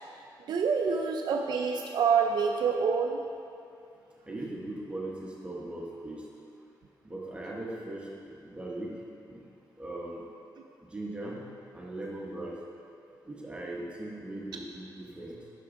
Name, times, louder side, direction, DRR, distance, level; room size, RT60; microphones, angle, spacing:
voice 1, 0.5-3.2, right 6 dB, 70° right, 2 dB, 0.4 m, -26 dB
voice 2, 4.3-6.2 7.0-8.9 9.3-9.4 9.8-10.2 10.9-11.4 11.7-12.5 13.3-15.4, right 1 dB, 15° right, -4 dB, 0.9 m, -39 dB
8.4 x 6.0 x 3.6 m, 2.5 s
wide cardioid pair, 170°, 8 cm